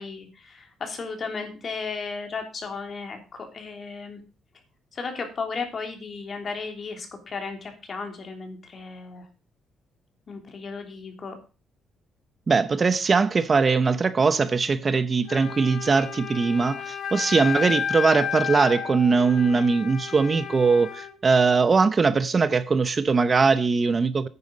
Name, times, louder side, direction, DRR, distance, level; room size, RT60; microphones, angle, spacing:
voice 1, 0.0-4.2 4.9-9.3 10.3-11.3, left 4 dB, 45° left, 3.3 m, -35 dB
voice 2, 12.5-24.3, right 4 dB, 35° right, 0.8 m, -21 dB
Wind instrument woodwind instrument, 15.2-21.1, left 8 dB, 60° left, 3.8 m, -32 dB
9.8 x 9.4 x 5.2 m
cardioid pair, 90°, 0 cm